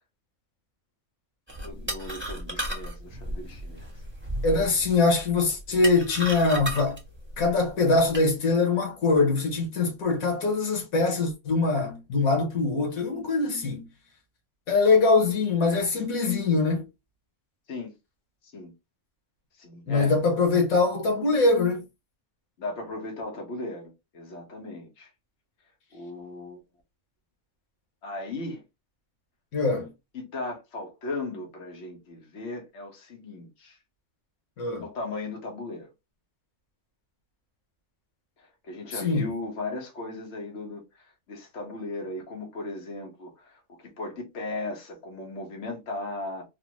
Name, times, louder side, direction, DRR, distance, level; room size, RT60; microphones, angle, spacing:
sound 1, 1.5-8.2, right 1 dB, 10° right, 1.0 m, -35 dB
voice 1, 1.6-3.9 17.7-17.9 18.5-18.7 19.6-20.1 22.6-25.1 25.9-26.6 28.0-28.6 30.1-33.8 34.8-35.9 38.6-40.8 41.3-43.6 44.0-46.4, left 2 dB, 55° left, 1.3 m, -37 dB
voice 2, 4.4-7.0 7.4-13.9 14.7-16.9 19.9-21.8 29.5-29.9 34.6-34.9 38.9-39.4, left 3 dB, 85° left, 1.5 m, -23 dB
3.8 x 2.0 x 2.9 m
omnidirectional pair, 1.4 m